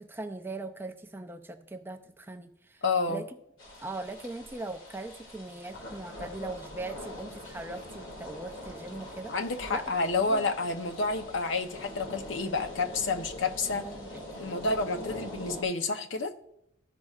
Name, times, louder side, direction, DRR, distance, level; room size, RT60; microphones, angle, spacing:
voice 1, 0.0-2.8 3.1-3.3 3.8-9.3 9.7-9.8 10.3-10.4 13.7-14.2, right 2 dB, 10° right, 5 dB, 0.4 m, -40 dB
voice 2, 2.8-3.2 9.3-13.8 14.4-16.3, left 3 dB, 65° left, 6 dB, 0.7 m, -29 dB
sound 1, 3.6-15.6, left 1 dB, 80° left, 2.2 m, -43 dB
14.0 x 5.3 x 2.4 m, 0.80 s
head